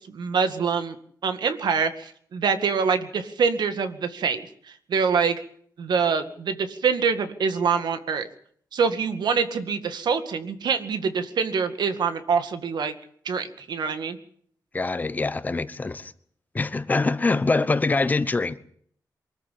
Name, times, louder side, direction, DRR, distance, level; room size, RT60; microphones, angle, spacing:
voice 1, 0.1-1.0 1.2-4.4 4.9-5.4 5.8-8.3 8.7-12.9 13.3-14.2, right 5 dB, 85° right, 2.1 m, -25 dB
voice 2, 14.7-16.1 16.5-18.6, left 3 dB, 25° left, 0.9 m, -24 dB
24.0 x 14.0 x 8.6 m
wide cardioid pair, 180°, 7 cm